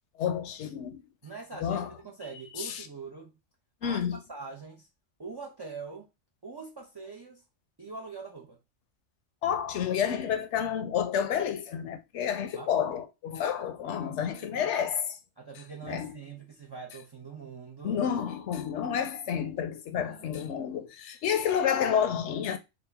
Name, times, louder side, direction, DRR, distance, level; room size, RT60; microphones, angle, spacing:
voice 1, 0.2-1.0 1.6-1.9 2.6-2.8 3.8-4.2 9.4-15.2 15.8-16.1 17.8-22.6, left 8 dB, 65° left, 0.9 m, -30 dB
voice 2, 1.2-3.3 3.8-4.9 5.2-6.1 6.4-7.4 7.8-8.6 12.2-12.9 13.8-14.7 15.4-18.0 20.0-20.8, right 4 dB, 40° right, 0.3 m, -44 dB
4.1 x 2.3 x 3.3 m
omnidirectional pair, 1.3 m